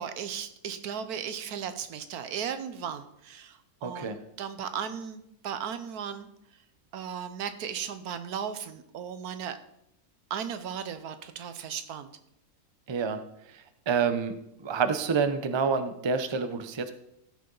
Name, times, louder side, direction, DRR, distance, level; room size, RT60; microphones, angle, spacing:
voice 1, 0.0-6.3 6.9-9.6 10.3-12.1, right 8 dB, 85° right, 10 dB, 1.3 m, -36 dB
voice 2, 3.8-4.2 12.9-13.2 13.5-14.3 14.6-16.9, right 5 dB, 35° right, 9 dB, 0.4 m, -28 dB
14.5 x 6.7 x 3.9 m, 0.79 s
omnidirectional pair, 1.6 m